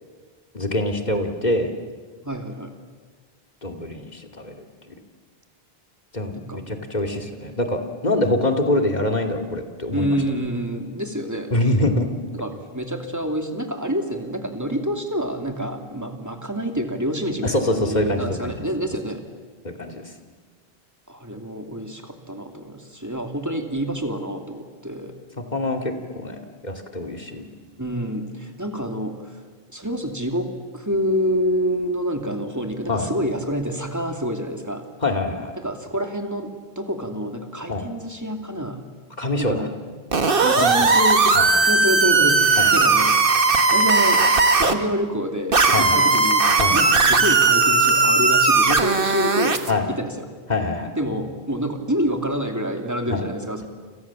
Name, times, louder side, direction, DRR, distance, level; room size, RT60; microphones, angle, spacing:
voice 1, 0.5-1.7 3.6-4.9 6.1-10.2 11.5-12.1 17.4-18.5 19.8-20.0 25.4-27.5 32.9-33.1 35.0-35.6 37.7-37.8 39.2-39.6 40.5-40.7 41.3-41.7 42.6-42.8 45.7-46.0 46.6-46.8 49.7-49.9 50.5-50.9 53.1-53.2, left 1 dB, 45° left, 4 dB, 2.8 m, -24 dB
voice 2, 2.2-2.7 6.4-6.8 9.9-11.5 12.3-19.2 21.1-25.1 27.8-29.4 29.7-34.8 35.6-36.5 36.8-38.9 39.4-39.7 40.4-41.4 41.6-44.2 44.5-49.6 49.9-50.3 51.0-53.7, equal, 15° right, 4 dB, 2.8 m, -27 dB
sound 1, 40.1-44.7 45.5-49.7, right 3 dB, 60° right, 1.8 m, -17 dB
29.5 x 27.0 x 7.5 m, 1.5 s
omnidirectional pair, 1.0 m